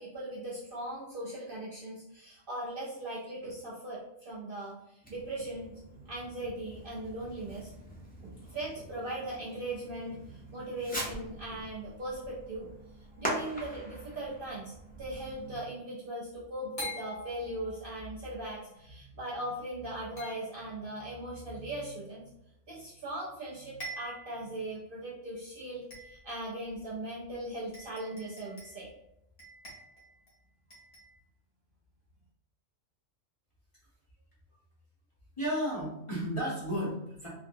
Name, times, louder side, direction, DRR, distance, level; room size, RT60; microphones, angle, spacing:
voice 1, 0.0-5.8 6.1-7.7 8.2-12.7 13.2-22.2 22.7-28.9, right 1 dB, 55° right, -6 dB, 0.7 m, -39 dB
Fireworks, 5.0-15.7, right 1 dB, 15° left, 0.3 m, -43 dB
sound 1, 13.1-13.7 16.8-18.1 20.2-21.0 23.0-23.1 23.5-23.6 23.8-24.4 25.0-25.1 25.9-26.4 27.3-27.4 27.7-28.9 29.4-30.3 30.7-31.2, equal, 65° left, 1.5 m, -45 dB
voice 2, 35.4-37.3, equal, 30° left, -6 dB, 0.7 m, -33 dB
3.7 x 2.2 x 2.5 m, 0.81 s
omnidirectional pair, 1.4 m